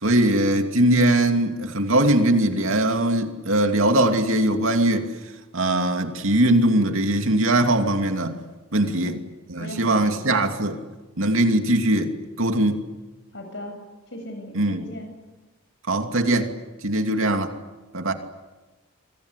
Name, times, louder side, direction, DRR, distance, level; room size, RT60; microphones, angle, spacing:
voice 1, 0.0-5.1 5.5-8.4 8.7-9.2 9.5-10.8 11.2-12.9 14.5-14.9 15.9-16.5 16.8-17.5 17.9-18.1, right 1 dB, 70° right, 2.7 m, -21 dB
voice 2, 9.6-10.5 13.3-13.8 14.1-15.1, left 1 dB, 55° left, 7.7 m, -38 dB
28.5 x 24.5 x 8.3 m
head